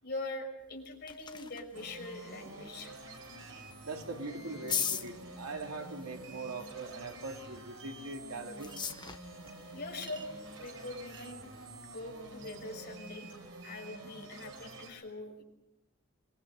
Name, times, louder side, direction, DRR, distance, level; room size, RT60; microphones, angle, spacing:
voice 1, 0.0-3.2 9.7-10.2 10.6-11.5 11.9-13.3 13.6-15.4, left 2 dB, 50° left, 2 dB, 6.0 m, -43 dB
sound 1, 0.6-13.2, left 7 dB, 20° left, 1.0 m, -44 dB
sound 2, 1.7-14.9, right 2 dB, 65° right, 4.6 m, -48 dB
voice 2, 3.8-8.8, right 3 dB, 85° right, 2 dB, 3.2 m, -41 dB
Chink clink, 8.6-8.8 10.0-10.3 11.1-11.3, right 5 dB, 20° right, 1.2 m, -51 dB
25.5 x 22.5 x 6.7 m, 0.90 s
head